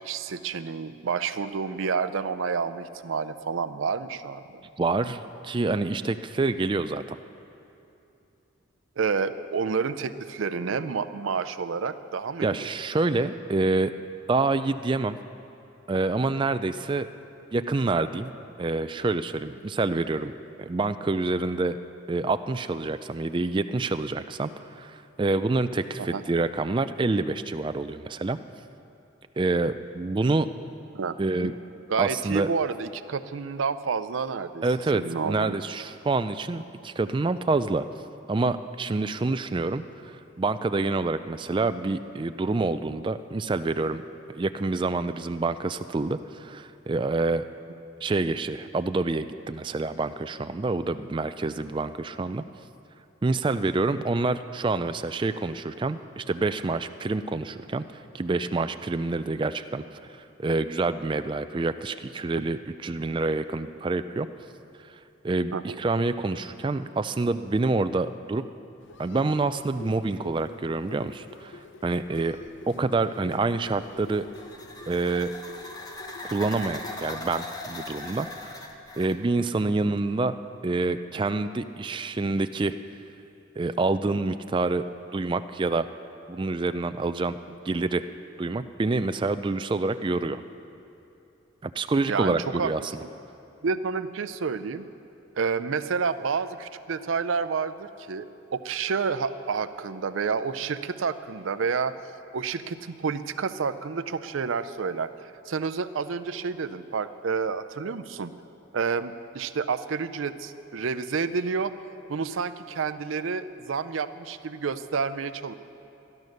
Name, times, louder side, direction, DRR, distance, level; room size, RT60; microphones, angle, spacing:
voice 1, 0.0-4.6 9.0-12.7 26.0-26.2 30.9-31.5 31.9-34.6 34.9-35.6 65.5-65.8 92.1-92.7 93.6-94.9 95.4-102.0 102.3-108.3 108.7-111.7 112.1-115.5, right 5 dB, 80° right, 13 dB, 0.5 m, -29 dB
voice 2, 4.8-7.2 12.4-13.9 14.3-15.2 15.9-17.1 17.5-18.3 18.6-20.3 20.6-21.8 22.1-28.4 29.4-30.5 31.2-31.5 32.0-32.5 34.6-37.9 38.3-44.0 44.3-47.4 48.0-52.4 53.2-59.8 60.4-64.3 64.9-65.0 65.2-68.4 69.0-72.4 72.7-74.3 74.9-75.3 76.2-78.5 79.0-80.4 80.6-82.7 83.6-84.9 85.1-85.9 86.3-87.3 87.7-88.1 88.4-90.4 91.6-92.9, right 3 dB, 25° right, 11 dB, 0.3 m, -27 dB
sound 1, 68.8-77.1, left 3 dB, 70° left, 0.6 m, -47 dB
sound 2, 73.9-79.2, left 2 dB, 20° left, 0.9 m, -40 dB
13.5 x 11.0 x 6.5 m, 2.8 s
head